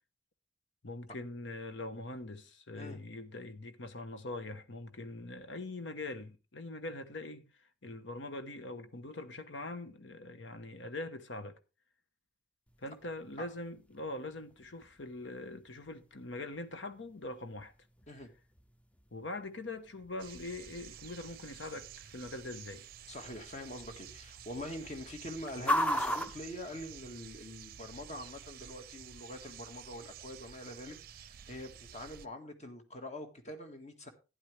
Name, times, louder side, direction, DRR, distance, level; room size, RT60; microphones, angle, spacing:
voice 1, 0.8-7.5 7.8-11.6 12.8-17.7 19.1-22.9, left 2 dB, 85° left, 1.1 m, -43 dB
sound 1, 12.7-27.5, equal, 5° left, 0.5 m, -41 dB
sound 2, 20.2-32.3, right 9 dB, 55° right, 0.5 m, -51 dB
voice 2, 23.1-34.1, left 1 dB, 40° left, 1.7 m, -44 dB
12.0 x 9.7 x 3.3 m
head